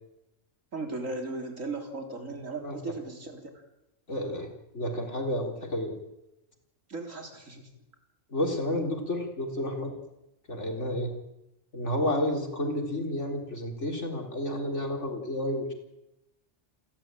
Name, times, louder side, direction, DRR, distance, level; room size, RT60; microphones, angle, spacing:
voice 1, 0.7-3.5 6.9-7.7, right 3 dB, 90° right, 4 dB, 4.0 m, -37 dB
voice 2, 4.1-4.5 4.7-5.9 8.3-9.9 10.5-11.1 11.7-15.7, left 1 dB, 65° left, 3 dB, 4.1 m, -30 dB
29.0 x 13.0 x 9.0 m, 0.91 s
omnidirectional pair, 1.3 m